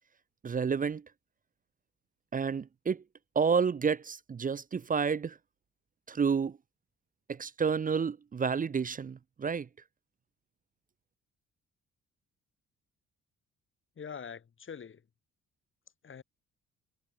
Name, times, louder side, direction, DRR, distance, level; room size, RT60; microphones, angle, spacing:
voice 1, 0.4-1.0 2.3-3.0 3.4-5.4 6.1-6.6 7.3-9.7, right 6 dB, 30° right, 0.6 m, -30 dB
voice 2, 14.0-15.0 16.0-16.2, left 7 dB, 40° left, 2.4 m, -44 dB
cardioid pair, 90°, 30 cm